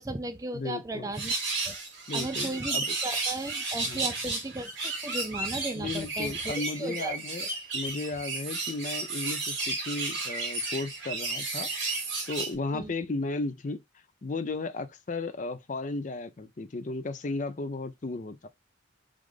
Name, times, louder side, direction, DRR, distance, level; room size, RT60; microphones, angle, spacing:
voice 1, 0.0-1.3 1.6-1.8 2.1-7.5 12.7-12.9, right 2 dB, 15° right, 0.4 m, -36 dB
voice 2, 0.5-1.1 2.1-3.0 3.9-4.1 5.7-7.5 7.7-11.7 12.3-13.8 14.2-18.5, left 3 dB, 40° left, 0.5 m, -34 dB
sound 1, 1.1-12.5, right 3 dB, 60° right, 2.8 m, -33 dB
4.8 x 2.5 x 3.6 m
head